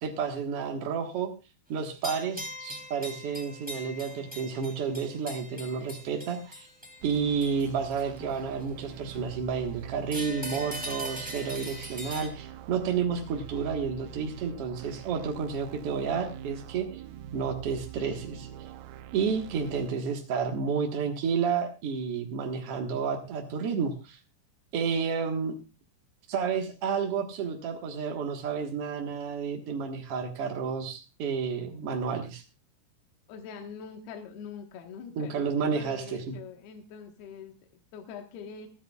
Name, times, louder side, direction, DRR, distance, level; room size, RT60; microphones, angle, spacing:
voice 1, 0.0-1.3 1.7-6.7 7.0-17.0 17.3-18.5 19.1-24.2 24.7-25.5 26.3-32.4 35.1-36.4, right 6 dB, 65° right, 3 dB, 1.5 m, -31 dB
sound 1, 2.0-8.8 10.1-12.3, equal, 5° right, 2.1 m, -41 dB
sound 2, 7.0-19.9, right 10 dB, 80° right, 2.0 m, -44 dB
voice 2, 33.3-38.7, left 6 dB, 70° left, 4 dB, 3.2 m, -43 dB
28.5 x 9.8 x 2.4 m, 0.28 s
omnidirectional pair, 4.9 m